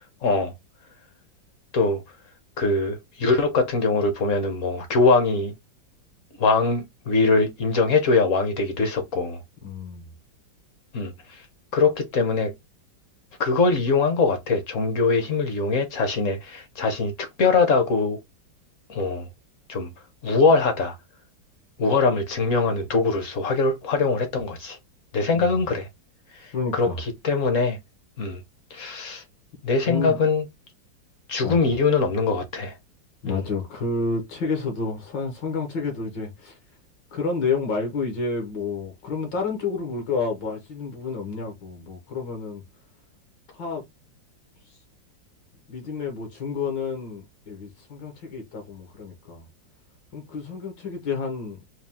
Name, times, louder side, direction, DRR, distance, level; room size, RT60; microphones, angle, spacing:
voice 1, 0.2-0.5 1.7-2.0 2.6-5.5 6.4-9.4 10.9-11.1 11.7-12.5 13.4-18.2 18.9-19.3 19.7-19.9 20.2-21.0 21.8-24.8 25.1-25.9 26.7-26.9 27.2-27.8 28.2-28.4 28.7-29.2 29.6-30.4 31.3-32.7 33.2-33.4, left 4 dB, 55° left, 0.9 m, -22 dB
voice 2, 9.6-10.1 25.3-25.6 26.5-27.0 29.9-30.2 31.4-31.6 33.2-36.6 37.1-42.6 43.5-43.8 45.7-49.4 50.1-51.6, left 4 dB, 75° left, 1.8 m, -30 dB
4.3 x 2.3 x 3.5 m
omnidirectional pair, 2.0 m